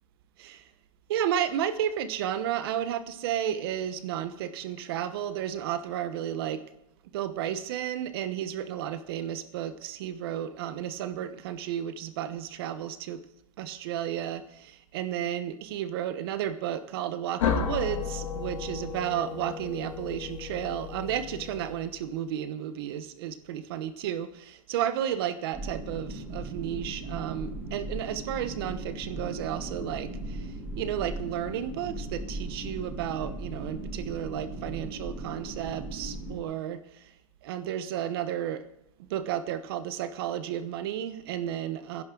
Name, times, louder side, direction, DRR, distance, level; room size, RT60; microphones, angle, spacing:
voice 1, 1.1-6.6 7.1-13.2 13.6-30.5 30.8-37.0 37.4-38.6 39.1-42.0, right 10 dB, 45° right, 12 dB, 1.0 m, -32 dB
sound 1, 17.4-22.1, left 7 dB, 65° left, 1.8 m, -33 dB
sound 2, 25.5-36.4, right 1 dB, 10° right, 1.9 m, -38 dB
16.5 x 10.5 x 3.8 m, 0.80 s
supercardioid pair, 175°, 18 cm